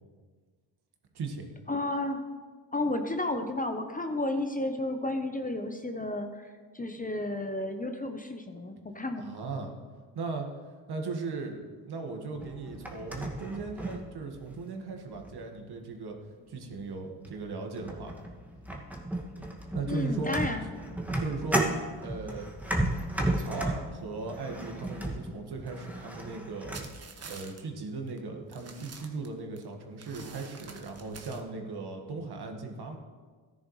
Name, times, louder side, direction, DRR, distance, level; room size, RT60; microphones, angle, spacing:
voice 1, 1.1-1.5 9.2-10.5 10.9-16.2 16.5-18.1 19.7-20.4 21.2-21.6 22.0-22.5 23.2-26.8 27.2-33.0, right 3 dB, 50° right, 3 dB, 2.0 m, -37 dB
voice 2, 1.7-2.2 2.7-9.2 19.9-20.7, left 2 dB, 15° left, 6 dB, 1.0 m, -32 dB
sound 1, 12.4-14.6 15.1-15.6 16.6-16.7 17.2-17.5 17.8-27.0, right 1 dB, 5° right, 2.1 m, -34 dB
sound 2, 26.7-27.6 28.1-28.2 28.5-29.6 30.0-31.4, right 4 dB, 30° right, 1.5 m, -46 dB
14.0 x 10.5 x 3.3 m, 1.5 s
supercardioid pair, 65°, 48 cm